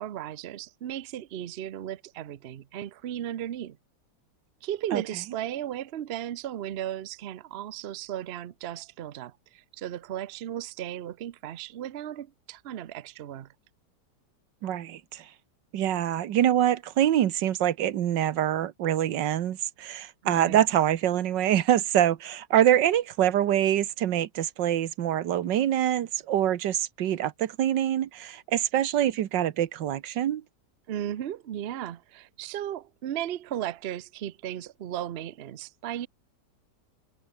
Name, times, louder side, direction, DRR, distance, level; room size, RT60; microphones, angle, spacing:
voice 1, 0.0-3.8 4.6-13.5 20.2-20.6 30.9-36.1, right 11 dB, 55° right, 0.7 m, -35 dB
voice 2, 14.6-15.2 15.7-30.4, right 11 dB, 90° right, 1.7 m, -25 dB
omnidirectional pair, 1.9 m